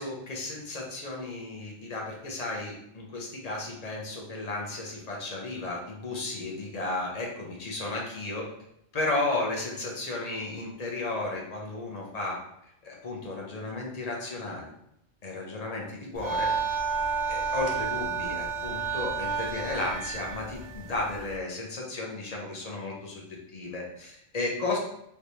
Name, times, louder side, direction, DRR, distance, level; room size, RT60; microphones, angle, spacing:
voice 1, 0.0-8.5 8.9-12.4 12.8-14.7 15.2-16.5 17.3-23.2 23.5-24.8, left 2 dB, 40° left, -1 dB, 0.8 m, -34 dB
sound 1, 16.1-21.4, right 5 dB, 55° right, 0.5 m, -31 dB
3.3 x 3.1 x 2.7 m, 0.76 s
omnidirectional pair, 1.2 m